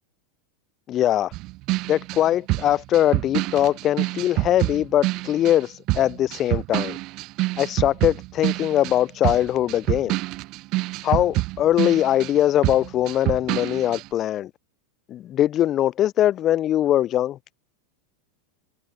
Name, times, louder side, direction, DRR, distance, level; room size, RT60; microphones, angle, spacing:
voice 1, 0.9-1.3 1.9-7.0 7.6-10.2 11.0-14.5 15.1-17.4, left 12 dB, 35° left, 0.4 m, -21 dB
sound 1, 1.3-5.6 5.9-12.4 12.6-14.1, right 21 dB, 45° right, 0.5 m, -26 dB
figure-of-eight pair, 85°, 0 cm